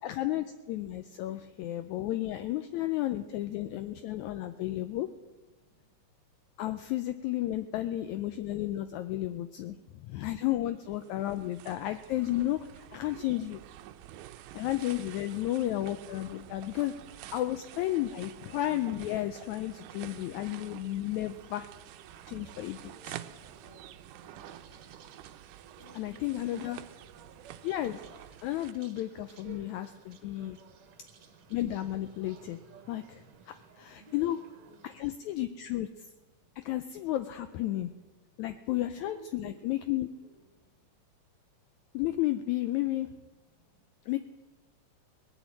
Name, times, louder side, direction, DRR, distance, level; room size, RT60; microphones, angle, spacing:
voice 1, 0.0-5.1 6.6-9.8 10.0-13.6 14.5-16.9 17.3-21.7 22.3-23.2 26.0-26.8 27.6-28.0 28.4-30.6 31.5-32.6 32.9-34.4 34.8-36.1 36.6-37.9 38.4-40.1 41.9-43.1 44.1-44.2, left 14 dB, 80° left, 10 dB, 1.7 m, -33 dB
sound 1, 10.8-28.7, right 13 dB, 85° right, 2.2 m, -49 dB
voice 2, 14.8-15.6 16.7-17.3 22.8-23.9 24.2-24.9 25.8-27.0 34.1-34.9 39.0-39.6 39.9-40.5, equal, 15° left, 1 dB, 1.5 m, -57 dB
sound 2, 21.4-35.1, right 6 dB, 60° right, 1.9 m, -57 dB
19.0 x 7.2 x 8.8 m, 1.2 s
omnidirectional pair, 3.7 m